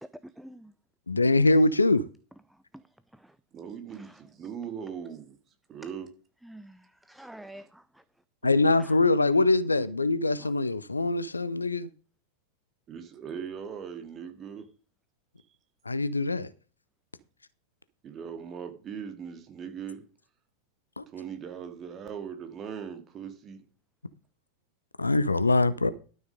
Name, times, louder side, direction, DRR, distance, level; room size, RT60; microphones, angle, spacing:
voice 1, 0.0-0.7 2.5-2.8 3.1-3.4 3.9-4.3 6.4-8.0 8.6-9.0 10.4-10.5, right 1 dB, 5° right, 0.6 m, -48 dB
voice 2, 1.1-2.0 8.4-11.9 15.9-16.5 21.0-21.1 25.0-25.9, left 2 dB, 80° left, 0.8 m, -23 dB
voice 3, 3.5-5.4 5.7-6.1 12.9-14.7 18.0-20.1 21.1-23.6, right 7 dB, 30° right, 2.3 m, -39 dB
12.0 x 6.7 x 5.3 m
figure-of-eight pair, 90°, 0 cm